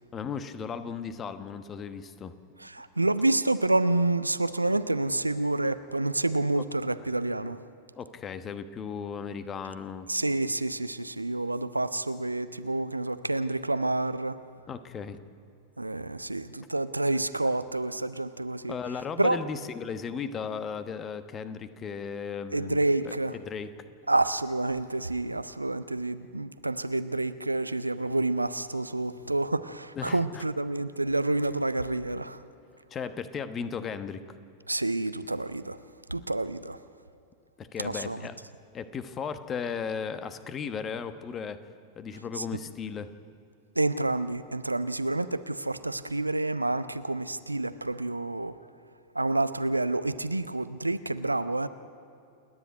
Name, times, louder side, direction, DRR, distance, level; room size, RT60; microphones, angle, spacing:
voice 1, 0.1-2.3 6.6-6.7 8.0-10.1 14.7-15.2 18.7-23.7 30.0-30.4 32.9-34.2 37.6-38.4 38.7-41.6 42.0-43.1, left 6 dB, 25° left, 11 dB, 1.1 m, -36 dB
voice 2, 2.6-7.6 10.1-14.4 15.8-18.8 19.2-19.4 22.5-23.3 24.1-32.4 34.7-35.8 36.1-36.8 37.8-38.2 42.4-42.5 43.8-48.6 49.1-51.7, right 2 dB, 85° right, 13 dB, 0.6 m, -28 dB
28.5 x 10.5 x 9.6 m, 2.5 s
figure-of-eight pair, 90°, 0 cm